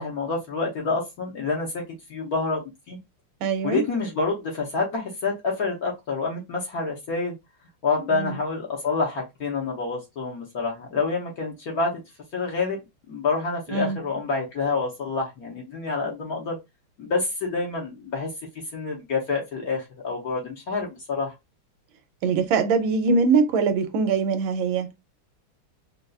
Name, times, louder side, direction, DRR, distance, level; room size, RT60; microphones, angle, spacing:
voice 1, 0.0-1.8 2.1-3.0 3.6-7.3 7.8-12.0 12.3-12.8 13.1-16.6 17.0-18.3 18.7-21.3, left 4 dB, 55° left, 1.2 m, -27 dB
voice 2, 3.4-3.8 8.1-8.3 13.7-14.0 22.2-24.9, right 5 dB, 80° right, 1.4 m, -22 dB
3.9 x 2.3 x 2.3 m
omnidirectional pair, 2.3 m